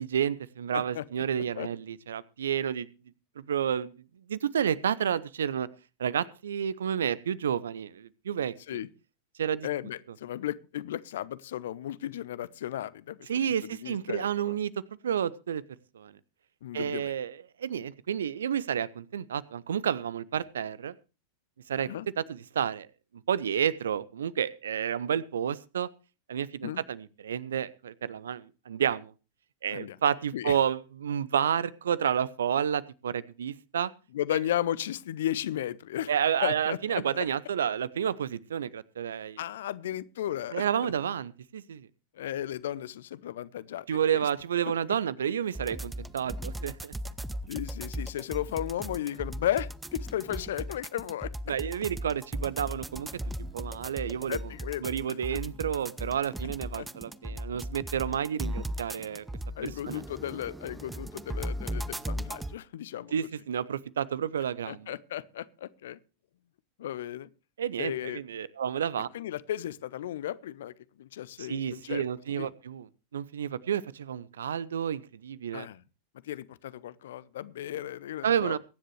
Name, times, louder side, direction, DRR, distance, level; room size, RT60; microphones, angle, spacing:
voice 1, 0.0-2.9 3.5-3.9 4.3-5.7 6.0-8.5 9.4-9.7 13.3-14.7 15.0-15.6 15.9-16.1 16.7-20.9 21.7-21.9 22.2-22.9 23.3-25.9 26.3-29.1 29.6-33.9 36.1-39.4 40.5-41.9 43.9-46.9 51.5-54.4 54.8-59.2 59.6-60.0 63.1-64.9 67.6-69.1 71.4-72.9 73.1-75.7 78.2-78.6, right 8 dB, 65° right, 0.7 m, -30 dB
voice 2, 0.7-1.0 1.5-1.7 8.7-8.9 9.6-14.6 16.6-17.1 21.7-22.1 26.6-26.8 29.7-30.0 30.3-30.6 34.1-36.1 36.4-37.0 39.4-40.9 42.1-43.9 44.1-44.3 47.5-51.3 54.3-54.9 55.3-55.4 56.8-56.9 59.6-63.1 64.7-66.0 66.8-67.3 67.8-68.2 69.1-72.0 72.4-72.5 75.5-75.8 76.2-78.6, left 12 dB, 60° left, 0.7 m, -35 dB
sound 1, 45.5-62.5, equal, 5° right, 0.6 m, -37 dB
23.0 x 10.0 x 3.2 m
figure-of-eight pair, 90°, 0 cm